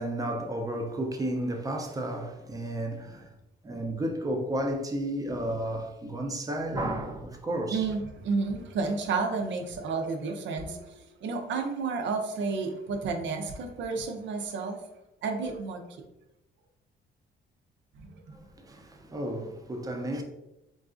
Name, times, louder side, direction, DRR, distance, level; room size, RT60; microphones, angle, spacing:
voice 1, 0.0-3.3 3.6-7.9 18.3-20.2, right 1 dB, 20° right, 0.5 m, -32 dB
voice 2, 7.7-14.8 15.2-15.8 17.9-18.4, right 4 dB, 70° right, 0.6 m, -31 dB
3.9 x 2.4 x 2.5 m
cardioid pair, 90°, 20 cm